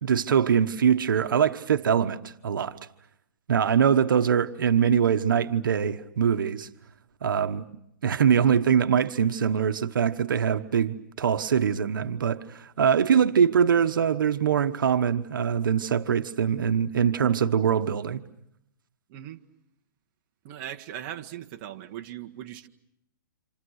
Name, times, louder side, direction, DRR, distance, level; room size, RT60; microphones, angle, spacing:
voice 1, 0.0-2.8 3.5-6.7 7.2-7.6 8.0-18.2, right 7 dB, 90° right, 1.1 m, -23 dB
voice 2, 19.1-19.4 20.4-22.7, right 11 dB, 35° right, 1.6 m, -39 dB
28.0 x 28.0 x 6.5 m
hypercardioid pair, 155°, 11 cm